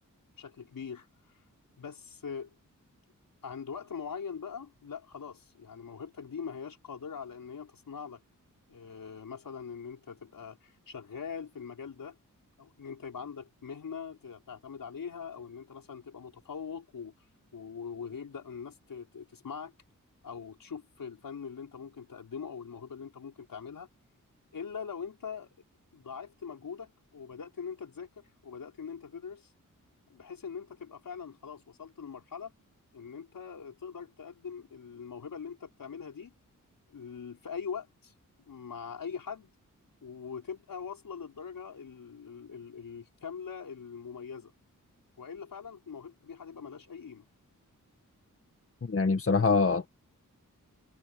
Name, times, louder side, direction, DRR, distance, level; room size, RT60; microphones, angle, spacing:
voice 1, 0.4-1.1 1.8-2.5 3.4-8.2 8.7-12.2 12.6-17.3 17.5-19.7 20.2-23.9 24.5-25.5 25.9-29.5 30.1-32.5 32.9-36.3 36.9-38.1 38.4-39.5 40.0-44.5 45.2-47.2, left 6 dB, 90° left, 5.5 m, -42 dB
voice 2, 48.8-49.9, left 4 dB, 40° left, 1.9 m, -24 dB
wide cardioid pair, 110°, 33 cm